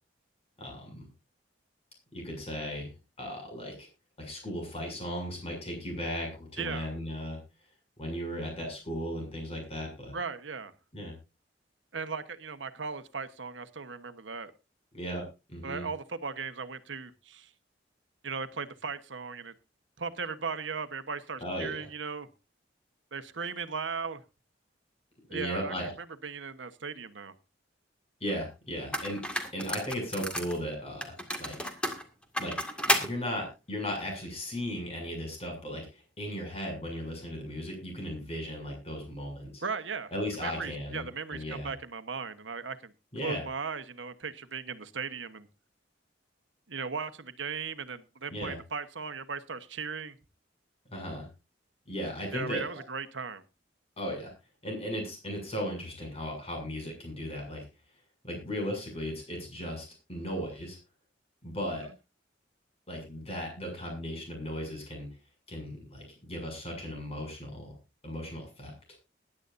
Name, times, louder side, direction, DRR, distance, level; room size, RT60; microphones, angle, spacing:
voice 1, 0.6-1.1 2.1-2.9 3.2-3.9 4.2-7.4 8.0-10.2 10.9-11.1 14.9-15.9 21.4-21.9 25.3-25.9 28.2-29.2 29.5-31.7 32.4-35.9 36.2-39.6 40.1-41.7 43.1-43.4 48.3-48.6 50.9-51.3 51.9-52.8 54.0-54.3 54.6-57.6 58.2-60.8 61.4-61.9 62.9-65.1 65.5-67.8 68.0-68.7, equal, 35° left, 3 dB, 6.9 m, -36 dB
voice 2, 6.6-6.9 10.1-10.7 11.9-14.5 15.6-17.5 18.2-19.5 20.0-22.3 23.1-24.2 25.3-25.7 26.2-27.3 39.6-40.1 40.4-42.9 43.2-45.5 46.7-50.2 52.3-53.4, right 5 dB, 90° right, 11 dB, 1.2 m, -37 dB
sound 1, 28.3-28.4 28.9-30.6 31.0-33.1, equal, 5° left, 2.1 m, -31 dB
20.5 x 11.0 x 2.6 m, 0.28 s
head